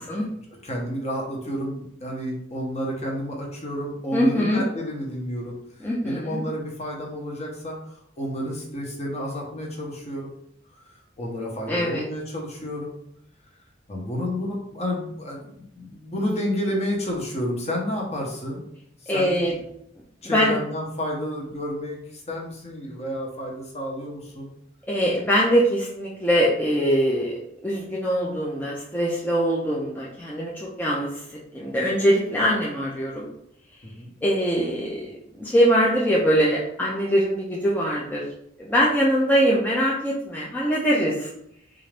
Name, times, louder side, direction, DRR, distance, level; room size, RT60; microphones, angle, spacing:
voice 1, 0.6-5.5 6.0-7.8 8.2-10.3 11.2-12.9 13.9-18.6 19.0-19.4 20.2-24.5 33.8-34.1, equal, 35° left, -1 dB, 0.9 m, -30 dB
voice 2, 4.1-4.6 5.8-6.4 11.7-12.0 19.1-19.5 20.2-20.6 24.9-33.3 34.2-38.2 38.6-41.3, equal, 10° left, -5 dB, 0.5 m, -23 dB
4.0 x 2.5 x 3.3 m, 0.73 s
head